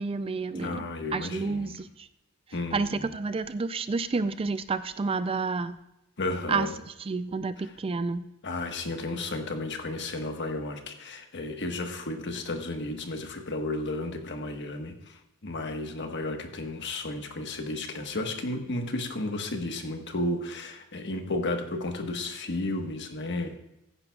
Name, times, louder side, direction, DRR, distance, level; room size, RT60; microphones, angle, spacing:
voice 1, 0.0-0.8 1.1-2.1 2.7-5.8 6.5-6.7 7.1-8.2, right 4 dB, 25° right, 13 dB, 0.3 m, -29 dB
voice 2, 0.5-1.8 2.5-3.1 6.2-6.7 7.6-7.8 8.4-23.6, left 2 dB, 55° left, 5 dB, 1.3 m, -33 dB
15.5 x 9.8 x 2.3 m, 0.88 s
head